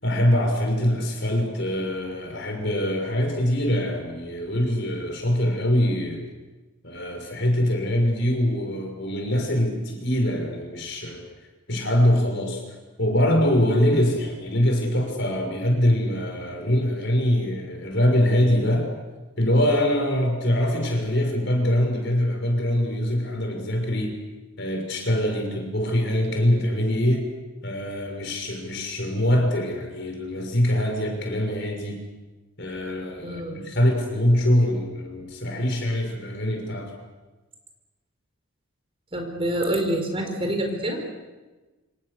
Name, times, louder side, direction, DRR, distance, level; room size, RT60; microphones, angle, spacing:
voice 1, 0.0-6.3 6.8-11.2 11.7-12.6 13.0-18.9 19.4-24.2 24.6-27.3 27.6-32.0 32.6-36.9, left 1 dB, 55° left, 3 dB, 6.0 m, -23 dB
voice 2, 33.2-33.6 39.1-41.2, right 1 dB, 25° right, 3 dB, 4.8 m, -27 dB
28.0 x 26.5 x 6.8 m, 1.2 s
head